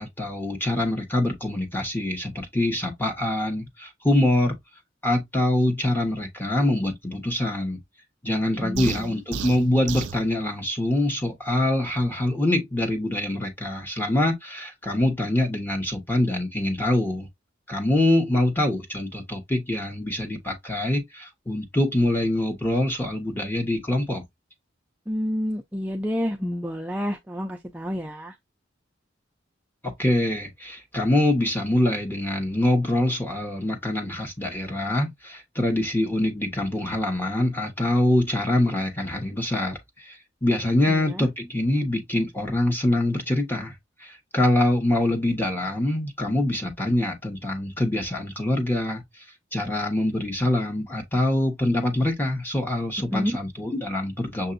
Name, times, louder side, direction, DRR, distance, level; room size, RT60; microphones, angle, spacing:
voice 1, 0.0-4.6 5.0-7.8 8.2-17.3 17.7-24.2 29.8-43.7 44.0-49.2 49.5-54.5, left 1 dB, 10° left, 1.1 m, -24 dB
voice 2, 8.6-9.2 25.1-28.4 40.9-41.3 53.1-53.4, equal, 10° right, 0.4 m, -29 dB
sound 1, 8.8-10.2, right 7 dB, 65° right, 0.4 m, -32 dB
6.7 x 2.6 x 2.5 m
head